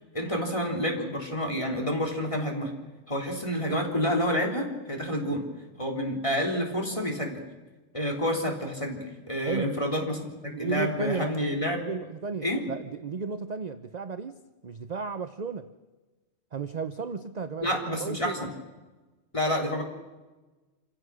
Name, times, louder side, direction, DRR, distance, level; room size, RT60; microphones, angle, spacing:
voice 1, 0.0-2.7 3.1-5.5 5.8-7.4 7.9-11.8 12.4-12.6 17.6-18.5 19.3-19.8, equal, 25° left, 1 dB, 3.5 m, -29 dB
voice 2, 9.4-9.8 10.5-11.4 11.8-15.7 16.5-18.4, right 5 dB, 40° right, 10 dB, 0.7 m, -34 dB
27.0 x 16.5 x 6.3 m, 1.2 s
omnidirectional pair, 1.4 m